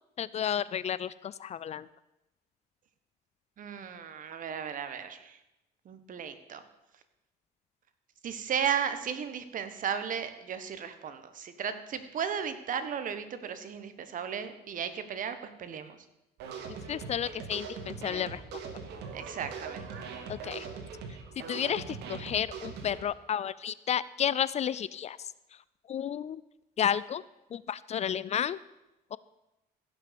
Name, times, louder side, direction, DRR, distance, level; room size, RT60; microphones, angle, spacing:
voice 1, 0.2-1.9 16.9-18.4 20.3-20.7 21.5-25.3 25.9-26.4 26.8-27.2 27.5-28.6 29.1-29.2, left 9 dB, 40° left, 18 dB, 0.4 m, -32 dB
voice 2, 3.6-5.4 5.8-6.6 8.2-16.0 19.1-19.9, right 8 dB, 50° right, 10 dB, 1.3 m, -35 dB
sound 1, 16.4-23.0, right 5 dB, 80° right, 2.1 m, -41 dB
15.5 x 6.5 x 6.9 m, 0.95 s
cardioid pair, 110°, 17 cm